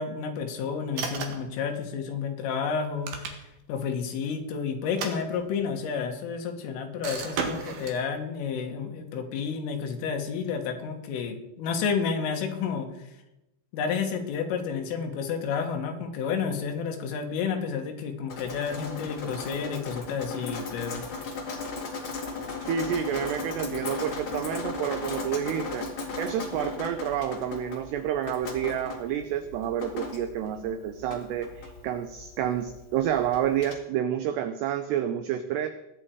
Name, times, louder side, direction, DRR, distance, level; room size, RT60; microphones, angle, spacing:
voice 1, 0.0-3.4 3.7-12.9 13.7-21.0, left 6 dB, 80° left, 4 dB, 4.3 m, -31 dB
sound 1, 0.9-1.5 2.8-3.7 4.8-5.8 7.0-8.0, right 5 dB, 55° right, 2.7 m, -34 dB
Drip, 18.3-33.7, left 4 dB, 60° left, 1.3 m, -37 dB
voice 2, 22.6-35.7, right 10 dB, 85° right, 9 dB, 2.4 m, -29 dB
22.5 x 9.2 x 4.7 m, 0.91 s
omnidirectional pair, 5.7 m